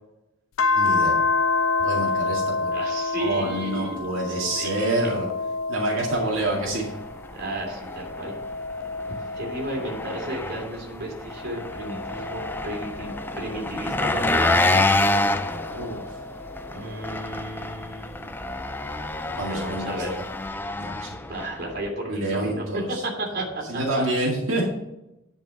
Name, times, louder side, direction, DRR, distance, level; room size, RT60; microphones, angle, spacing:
sound 1, 0.6-7.3 7.7-10.6 11.2-14.0 14.8-17.2 18.6-19.6, left 3 dB, 75° left, 0.4 m, -29 dB
voice 1, 0.7-1.2 1.8-2.7 3.2-5.3 5.7-6.9 15.7-16.2 19.3-19.9 20.8-21.1 22.1-23.0 23.7-24.7, right 1 dB, 75° right, -4 dB, 2.2 m, -27 dB
voice 2, 2.7-4.0 4.3-5.0 7.3-8.4 9.1-14.8 16.7-18.3 19.2-20.2 21.3-24.0 24.5-24.7, right 1 dB, 50° right, 0 dB, 2.9 m, -33 dB
Engine, 6.1-21.9, left 2 dB, 10° left, 0.4 m, -28 dB
10.5 x 5.3 x 5.6 m, 0.94 s
head